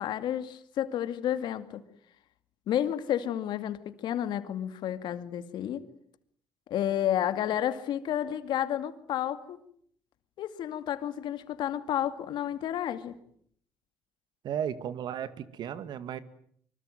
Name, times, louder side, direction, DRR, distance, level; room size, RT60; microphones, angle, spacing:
voice 1, 0.0-1.8 2.7-5.8 6.7-9.6 10.4-13.2, left 11 dB, 75° left, 11 dB, 2.4 m, -31 dB
voice 2, 14.4-16.2, right 9 dB, 70° right, 14 dB, 2.2 m, -34 dB
25.0 x 24.0 x 9.2 m, 0.65 s
supercardioid pair, 70°, 8 cm